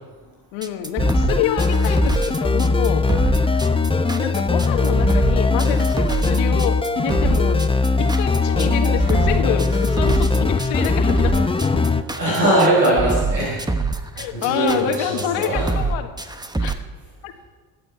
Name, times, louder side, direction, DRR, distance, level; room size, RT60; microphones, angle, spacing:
voice 1, 0.5-3.1 4.1-7.6 8.0-11.9 14.2-16.1 16.6-16.8 17.2-17.3, left 10 dB, 65° left, 6 dB, 1.8 m, -27 dB
sound 1, 0.6-16.7, right 3 dB, 10° right, 1.2 m, -24 dB
sound 2, 1.0-12.0, left 3 dB, 10° left, 0.8 m, -20 dB
voice 2, 12.2-13.8 14.3-15.8, right 1 dB, 90° right, -6 dB, 5.4 m, -20 dB
20.5 x 14.0 x 4.6 m, 1.3 s
figure-of-eight pair, 50°, 49 cm